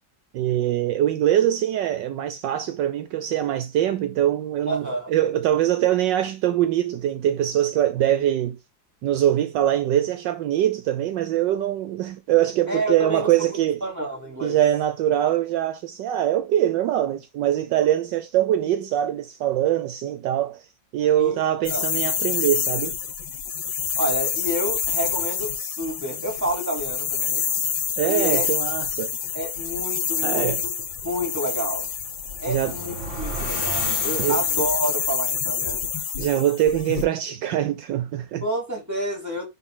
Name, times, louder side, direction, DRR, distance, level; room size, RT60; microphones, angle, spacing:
voice 1, 0.3-8.6 9.0-13.8 14.4-20.7 20.9-22.9 28.0-29.2 30.2-30.6 32.5-32.7 34.2-34.4 36.2-38.4, right 12 dB, 75° right, 1.3 m, -23 dB
voice 2, 4.7-5.1 12.7-14.6 21.2-21.4 21.7-21.9 24.0-27.5 28.1-28.4 29.3-30.7 31.0-31.9 32.4-32.9 33.2-35.9 38.4-39.5, right 1 dB, 10° right, 3.6 m, -29 dB
sound 1, 21.6-37.0, left 8 dB, 75° left, 1.8 m, -27 dB
sound 2, 32.0-34.9, right 2 dB, 40° right, 2.1 m, -34 dB
10.0 x 3.8 x 3.8 m
omnidirectional pair, 2.1 m